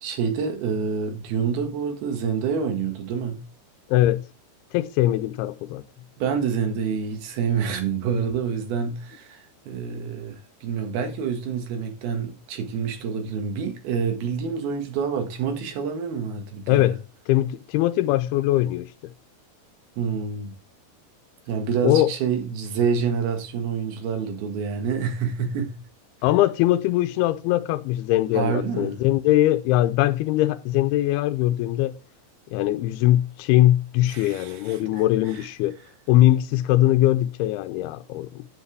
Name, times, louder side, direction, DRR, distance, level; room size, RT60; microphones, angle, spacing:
voice 1, 0.0-3.4 6.2-17.0 20.0-20.5 21.5-25.8 28.3-29.0 34.0-35.0 35.3-35.4, right 6 dB, 75° right, 3.5 m, -27 dB
voice 2, 3.9-4.2 4.7-5.8 16.7-17.0 17.3-18.9 21.8-22.1 26.2-32.0 32.5-35.8 36.1-38.5, left 15 dB, 85° left, 2.6 m, -21 dB
11.0 x 7.3 x 3.3 m
omnidirectional pair, 4.5 m